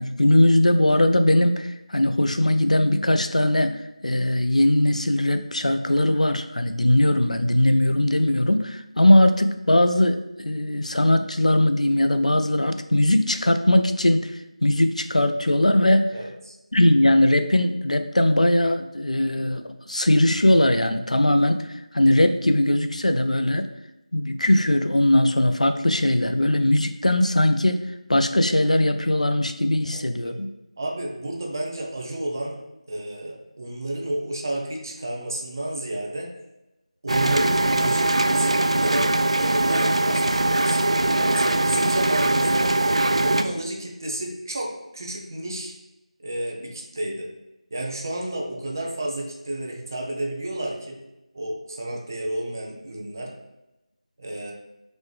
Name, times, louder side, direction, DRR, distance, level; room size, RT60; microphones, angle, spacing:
voice 1, 0.0-14.3 14.6-16.1 16.7-23.7 24.1-30.5, left 1 dB, 70° left, 8 dB, 0.4 m, -20 dB
voice 2, 16.1-16.6 29.8-30.4 30.8-32.6 32.9-36.3 37.0-40.9 41.1-42.7 43.2-45.7 46.2-47.3 47.7-51.0 51.3-53.3 54.2-54.5, right 1 dB, 30° right, 0 dB, 0.7 m, -31 dB
sound 1, 37.1-43.4, right 2 dB, 50° right, 0.3 m, -21 dB
3.9 x 3.6 x 3.3 m, 0.94 s
figure-of-eight pair, 165°, 4 cm